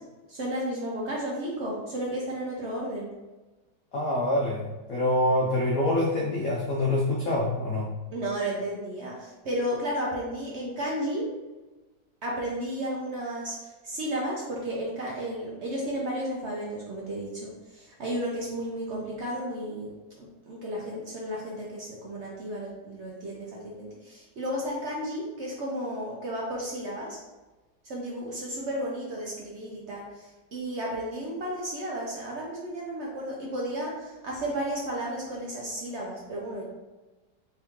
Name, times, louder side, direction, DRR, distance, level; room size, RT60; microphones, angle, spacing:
voice 1, 0.3-3.1 8.1-11.3 12.2-13.6 13.8-27.1 27.8-36.6, right 1 dB, 70° right, -3 dB, 0.6 m, -33 dB
voice 2, 3.9-7.9, left 1 dB, 65° left, -3 dB, 0.8 m, -26 dB
3.5 x 3.0 x 3.5 m, 1.2 s
omnidirectional pair, 2.0 m